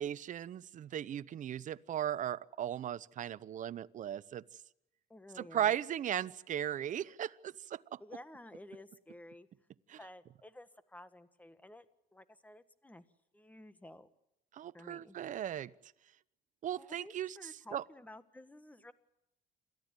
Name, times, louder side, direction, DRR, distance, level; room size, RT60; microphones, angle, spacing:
voice 1, 0.0-4.4 5.4-8.0 9.9-10.0 14.5-15.7 16.6-17.4 17.7-17.8, right 10 dB, 50° right, 0.8 m, -37 dB
voice 2, 5.1-5.7 8.0-9.5 10.0-11.9 12.1-13.0 13.3-14.1 14.7-15.2 16.8-18.9, left 1 dB, 10° left, 1.5 m, -53 dB
28.0 x 13.5 x 9.0 m
cardioid pair, 110°, 17 cm